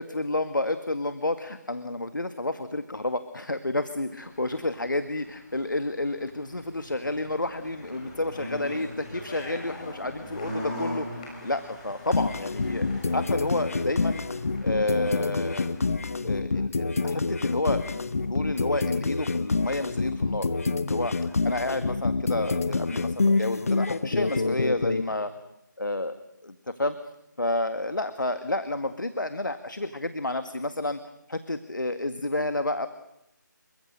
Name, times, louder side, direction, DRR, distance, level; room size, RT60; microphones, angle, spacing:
voice 1, 0.0-14.3 14.6-15.7 16.2-20.5 20.9-25.3 25.8-26.1 26.4-27.0 27.4-31.0 31.3-32.9, left 2 dB, 75° left, 10 dB, 1.9 m, -30 dB
sound 1, 4.1-15.8, left 1 dB, 20° left, 6.5 m, -41 dB
sound 2, 12.1-25.0, left 3 dB, 45° left, 1.4 m, -27 dB
28.0 x 24.0 x 6.7 m, 0.83 s
figure-of-eight pair, 160°, 11 cm